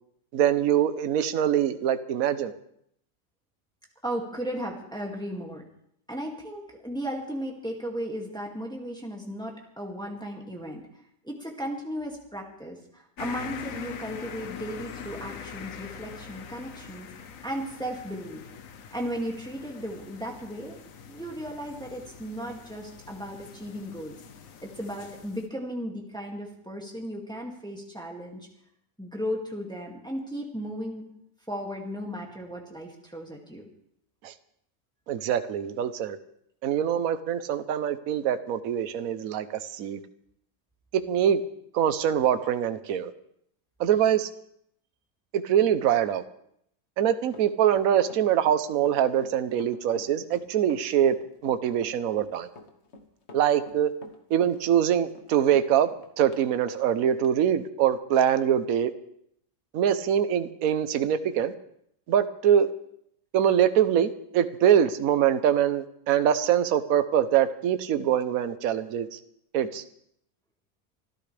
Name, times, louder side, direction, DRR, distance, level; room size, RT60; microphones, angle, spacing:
voice 1, 0.3-2.5 34.2-34.3 35.1-36.2 36.6-40.0 40.9-41.4 41.7-43.1 43.8-44.3 45.3-46.2 47.0-51.2 51.4-52.5 53.3-53.9 54.3-55.9 56.2-58.9 59.7-61.5 62.1-62.7 63.3-69.2 69.5-69.8, right 9 dB, 60° right, 11 dB, 1.1 m, -24 dB
voice 2, 4.0-5.6 6.1-10.9 11.2-17.1 17.4-18.4 18.9-20.8 21.1-24.1 24.6-28.5 29.0-31.0 31.5-33.6, equal, ahead, -1 dB, 2.1 m, -35 dB
sound 1, 13.2-25.5, left 7 dB, 55° left, 1.1 m, -43 dB
Run, 47.3-56.5 56.8-56.9 57.2-57.3, left 3 dB, 40° left, 1.5 m, -48 dB
25.5 x 13.0 x 3.4 m, 0.73 s
omnidirectional pair, 2.0 m